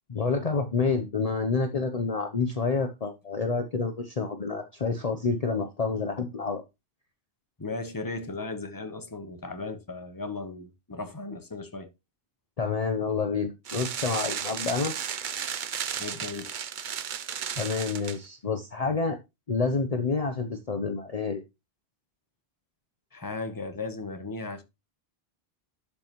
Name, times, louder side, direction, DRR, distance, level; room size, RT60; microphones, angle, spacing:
voice 1, 0.1-6.6 12.6-15.0 17.6-19.2 19.5-21.4, left 4 dB, 40° left, 0.9 m, -28 dB
voice 2, 7.6-11.9 16.0-16.5 23.1-24.6, left 3 dB, 20° left, 1.1 m, -36 dB
sound 1, 13.6-18.2, right 8 dB, 55° right, 0.7 m, -34 dB
11.5 x 5.4 x 3.1 m
omnidirectional pair, 1.0 m